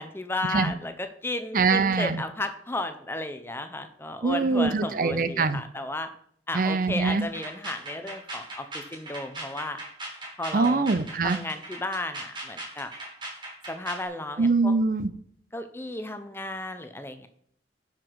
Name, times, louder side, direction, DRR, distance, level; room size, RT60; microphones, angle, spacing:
voice 1, 0.0-6.1 6.5-9.8 10.4-10.9 11.2-12.9 13.7-14.7 15.5-17.3, left 2 dB, 15° left, 8 dB, 0.7 m, -34 dB
voice 2, 1.5-2.2 4.2-5.6 6.5-7.3 10.5-11.4 14.4-15.1, right 4 dB, 50° right, 13 dB, 0.5 m, -23 dB
sound 1, 7.2-14.1, right 2 dB, 25° right, 4.0 m, -39 dB
10.0 x 5.9 x 4.7 m, 0.65 s
head